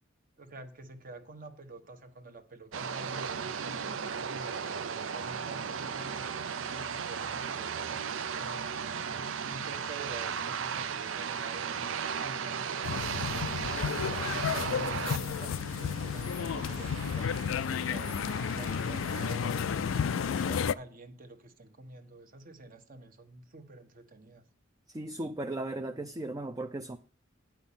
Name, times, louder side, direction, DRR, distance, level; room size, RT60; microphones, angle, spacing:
voice 1, 0.4-8.6 9.0-11.9 12.2-13.8 14.1-18.2 18.5-24.4, right 2 dB, 45° right, 1.2 m, -47 dB
sound 1, 2.7-20.6, right 6 dB, 70° right, 0.6 m, -36 dB
sound 2, 12.8-20.7, left 7 dB, 75° left, 0.4 m, -32 dB
voice 2, 24.9-27.0, right 2 dB, 20° right, 0.5 m, -36 dB
9.3 x 5.7 x 7.2 m
head